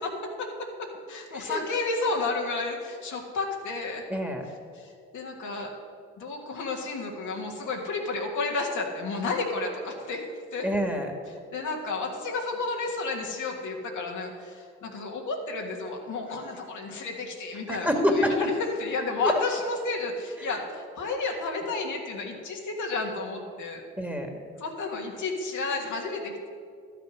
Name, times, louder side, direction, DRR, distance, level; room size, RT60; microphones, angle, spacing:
voice 1, 0.8-4.0 4.7-5.8 6.2-10.2 10.5-10.6 11.5-23.8 24.6-26.3, left 3 dB, 70° left, 0 dB, 1.7 m, -31 dB
voice 2, 1.3-1.6 4.1-4.5 10.6-11.2 17.7-18.4 19.2-19.3 20.4-20.6 24.0-24.3, equal, 5° right, 3 dB, 1.9 m, -27 dB
12.0 x 6.6 x 6.3 m, 2.3 s
hypercardioid pair, 50°, 31 cm